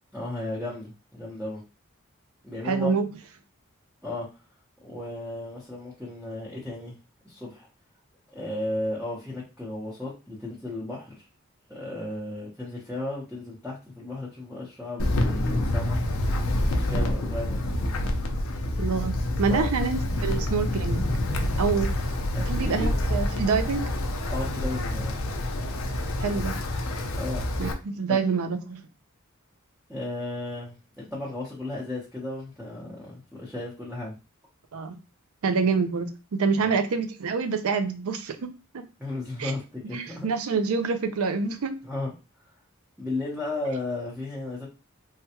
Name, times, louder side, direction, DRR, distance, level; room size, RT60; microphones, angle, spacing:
voice 1, 0.1-1.6 2.4-3.0 4.0-4.3 4.8-7.0 7.2-7.7 8.3-11.2 11.7-16.3 16.7-18.0 19.5-19.7 22.3-23.0 24.3-25.2 27.2-27.4 28.1-28.2 29.9-34.1 36.6-36.7 39.0-40.3 41.8-42.1 43.0-44.7, left 2 dB, 5° right, 0.8 m, -34 dB
voice 2, 2.6-3.1 18.8-21.1 21.6-21.9 22.5-23.9 26.2-26.5 27.6-28.8 34.7-35.0 35.4-38.8 39.4-39.5 39.9-41.8, right 5 dB, 85° right, 0.5 m, -27 dB
Wind, 15.0-27.7, left 1 dB, 70° left, 0.5 m, -27 dB
3.2 x 2.3 x 2.8 m
head